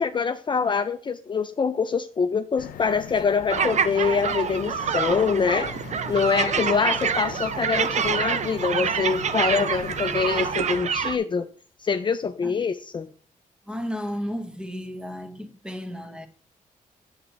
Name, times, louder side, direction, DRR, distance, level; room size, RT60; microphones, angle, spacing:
voice 1, 0.0-5.8 6.1-11.5 11.8-13.1, left 5 dB, 35° left, 0.5 m, -25 dB
sound 1, 2.6-10.8, left 9 dB, 90° left, 0.6 m, -40 dB
sound 2, 3.5-11.2, right 7 dB, 55° right, 0.7 m, -26 dB
voice 2, 13.7-16.3, equal, 5° right, 1.3 m, -33 dB
8.5 x 7.8 x 3.3 m
cardioid pair, 95°, 14 cm